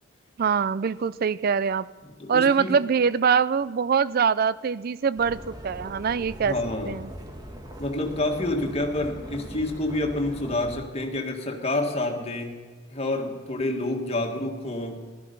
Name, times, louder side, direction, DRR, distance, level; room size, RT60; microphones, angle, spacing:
voice 1, 0.4-1.9 2.3-6.6 6.9-7.1, right 6 dB, 45° right, 18 dB, 0.4 m, -23 dB
voice 2, 2.0-2.7 6.4-7.0 7.8-12.6 12.9-15.0, left 2 dB, 30° left, 1 dB, 1.8 m, -28 dB
sound 1, 5.2-10.7, equal, 20° right, 1.5 m, -41 dB
15.0 x 13.0 x 5.4 m, 1.5 s
head